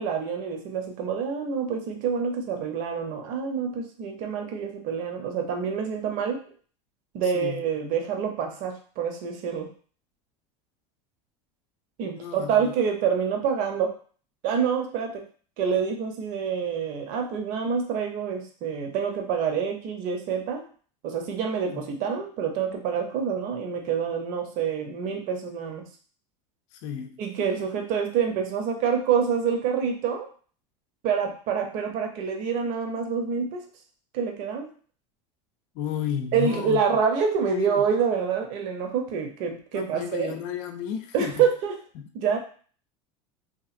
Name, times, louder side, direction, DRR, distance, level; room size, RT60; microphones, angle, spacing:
voice 1, 0.0-6.4 7.1-9.7 12.0-13.9 14.4-15.2 15.6-20.6 21.0-25.9 27.2-30.3 31.0-33.6 34.1-34.7 36.3-40.4 41.1-41.8 42.1-42.4, right 6 dB, 60° right, 3 dB, 0.7 m, -27 dB
voice 2, 7.2-7.6 12.1-12.7 21.7-21.8 26.7-27.2 35.8-36.8 37.4-37.8 39.7-41.3, left 8 dB, 65° left, 5 dB, 0.4 m, -32 dB
2.9 x 2.5 x 2.5 m, 0.44 s
supercardioid pair, 100°, 16 cm